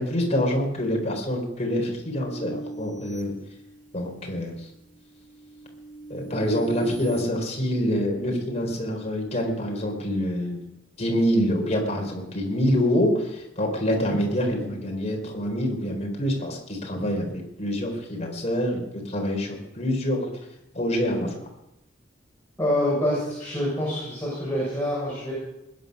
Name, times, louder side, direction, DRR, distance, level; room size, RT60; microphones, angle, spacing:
voice 1, 0.0-3.3 3.9-4.7 6.1-10.6 11.0-20.3 20.7-21.4, equal, 35° left, 2 dB, 3.8 m, -26 dB
sound 1, 2.2-4.2 4.7-7.2, right 2 dB, 45° right, 3.8 m, -40 dB
voice 2, 22.6-25.3, left 1 dB, 10° left, -7 dB, 7.0 m, -26 dB
21.5 x 9.7 x 6.5 m, 0.90 s
head